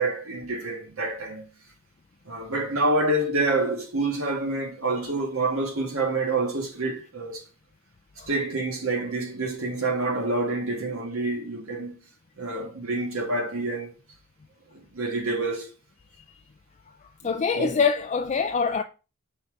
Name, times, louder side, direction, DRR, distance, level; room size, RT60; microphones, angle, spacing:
voice 1, 0.0-1.5 2.2-7.4 8.3-12.0 12.4-13.9 14.7-15.7 17.5-17.7, right 2 dB, 70° right, 1.6 m, -27 dB
voice 2, 17.2-18.8, left 5 dB, 30° left, 0.3 m, -24 dB
5.6 x 3.9 x 4.6 m
head